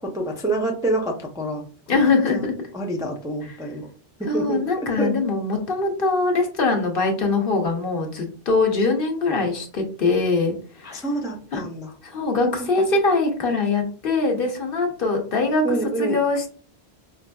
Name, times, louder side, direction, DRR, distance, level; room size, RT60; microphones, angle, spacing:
voice 1, 0.0-1.6 1.9-2.0 2.3-2.5 2.7-3.9 4.2-5.1 10.8-11.9 15.6-16.2, right 2 dB, 5° right, 0 dB, 0.4 m, -27 dB
voice 2, 1.9-2.5 3.4-3.6 4.3-11.0 11.5-11.6 12.0-16.5, left 3 dB, 60° left, 2 dB, 1.0 m, -22 dB
4.8 x 2.5 x 2.2 m, 0.41 s
omnidirectional pair, 1.1 m